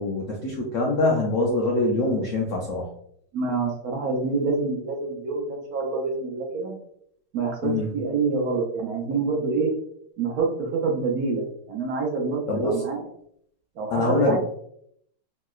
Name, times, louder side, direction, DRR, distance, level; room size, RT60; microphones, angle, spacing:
voice 1, 0.0-2.9 7.6-7.9 12.5-12.7 13.9-14.4, left 2 dB, 70° left, -2 dB, 0.7 m, -24 dB
voice 2, 3.3-6.7 7.3-9.7 10.2-13.0 13.8-14.4, right 4 dB, 70° right, 0 dB, 0.9 m, -27 dB
3.1 x 2.8 x 2.2 m, 0.69 s
omnidirectional pair, 1.9 m